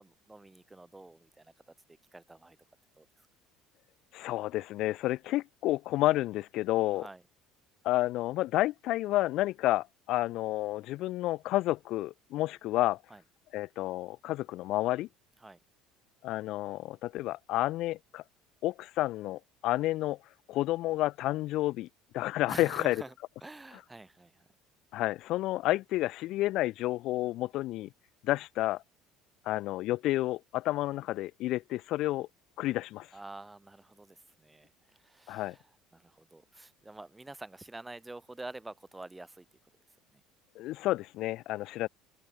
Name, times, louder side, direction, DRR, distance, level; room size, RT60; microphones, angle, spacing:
voice 1, 0.0-1.7 2.1-2.6 3.0-3.1 6.9-7.2 13.1-13.2 15.4-15.6 22.5-23.1 23.4-24.4 33.1-35.6 35.9-39.4 40.1-40.2, right 2 dB, 15° right, 1.0 m, -47 dB
voice 2, 4.1-7.1 7.8-13.0 13.5-15.1 16.2-18.2 18.6-20.2 20.5-21.9 22.1-23.0 24.9-27.9 28.2-28.8 29.5-32.3 32.6-33.1 35.3-35.6 40.6-41.9, left 16 dB, 65° left, 0.3 m, -30 dB
hypercardioid pair, 75°, 0 cm